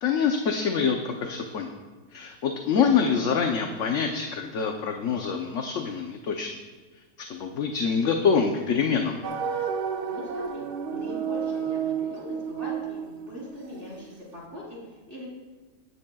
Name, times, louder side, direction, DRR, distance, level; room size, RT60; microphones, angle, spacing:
voice 1, 0.0-1.7 2.1-6.5 7.2-9.2, left 6 dB, 55° left, 3 dB, 1.0 m, -25 dB
sound 1, 9.2-14.1, right 7 dB, 90° right, 1.6 m, -31 dB
voice 2, 10.1-15.3, left 1 dB, 35° right, -6 dB, 4.1 m, -41 dB
18.5 x 10.0 x 2.3 m, 1.3 s
omnidirectional pair, 1.7 m